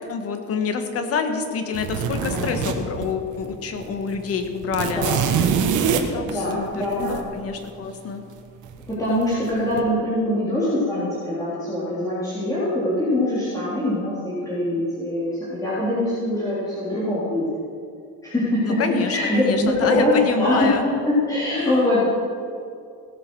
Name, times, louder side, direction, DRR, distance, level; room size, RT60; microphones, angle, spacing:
voice 1, 0.1-5.0 6.1-6.7 7.1-8.2 18.6-19.2 19.4-20.8 21.5-22.0, left 5 dB, 50° left, 6 dB, 1.6 m, -27 dB
sound 1, 1.7-3.5 3.8-3.9 4.1-7.2 8.6-9.2 9.5-9.8, right 7 dB, 70° right, 1.6 m, -24 dB
voice 2, 2.2-2.6 4.9-5.2 6.3-7.2 8.9-17.4 18.2-22.0, left 1 dB, 10° left, -11 dB, 3.4 m, -23 dB
17.5 x 8.3 x 6.2 m, 2.4 s
cardioid pair, 145°, 31 cm